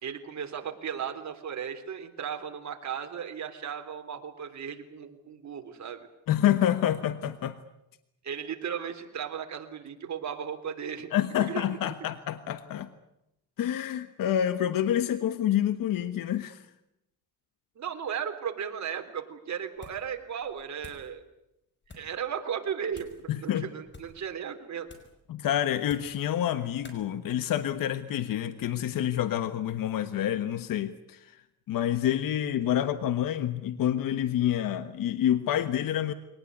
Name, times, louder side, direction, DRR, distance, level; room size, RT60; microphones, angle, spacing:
voice 1, 0.0-6.1 8.2-11.1 11.4-11.6 17.8-21.2 21.9-24.9, right 8 dB, 55° right, 5 dB, 3.5 m, -36 dB
voice 2, 6.3-7.6 11.1-12.9 13.6-16.6 23.3-23.7 25.3-31.3 31.7-36.1, left 11 dB, 75° left, 11 dB, 1.4 m, -28 dB
sound 1, 19.7-20.1 20.4-21.1 21.8-22.2 22.9-23.3 23.8-24.2 24.9-25.2 25.8-26.2 26.8-27.0, left 3 dB, 35° left, 5.4 m, -51 dB
23.0 x 19.0 x 9.6 m, 0.85 s
cardioid pair, 90°, 34 cm